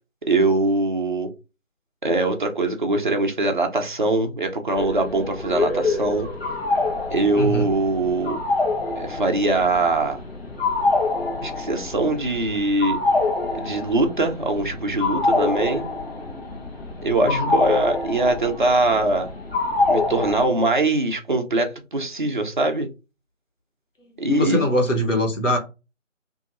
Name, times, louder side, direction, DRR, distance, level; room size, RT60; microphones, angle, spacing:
voice 1, 0.3-1.3 2.0-6.3 7.1-8.4 9.0-10.2 11.4-13.0 13.5-15.8 17.0-19.3 19.9-22.9 24.2-24.6, right 2 dB, 40° right, 0.5 m, -22 dB
sound 1, 4.7-20.5, left 3 dB, 50° left, 1.0 m, -26 dB
voice 2, 7.3-7.7 17.2-17.5 24.3-25.6, left 1 dB, 75° left, 1.3 m, -22 dB
2.8 x 2.6 x 2.4 m
figure-of-eight pair, 160°, 39 cm